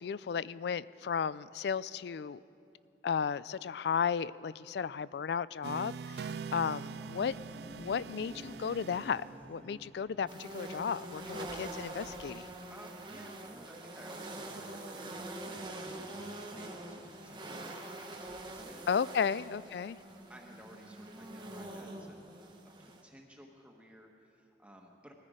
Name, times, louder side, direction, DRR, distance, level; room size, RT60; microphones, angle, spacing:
voice 1, 0.0-2.4 3.0-6.2 6.5-12.5 18.9-20.0, left 6 dB, 70° left, 19 dB, 0.3 m, -34 dB
sound 1, 5.6-9.9, right 5 dB, 65° right, 0.3 m, -43 dB
sound 2, 6.4-11.0, equal, 10° left, 0.8 m, -53 dB
sound 3, 10.3-23.0, right 1 dB, 25° right, 1.2 m, -44 dB
voice 2, 12.7-19.0 19.3-19.5 20.3-25.1, equal, 5° right, 0 dB, 1.2 m, -56 dB
20.5 x 14.0 x 5.0 m, 2.7 s
head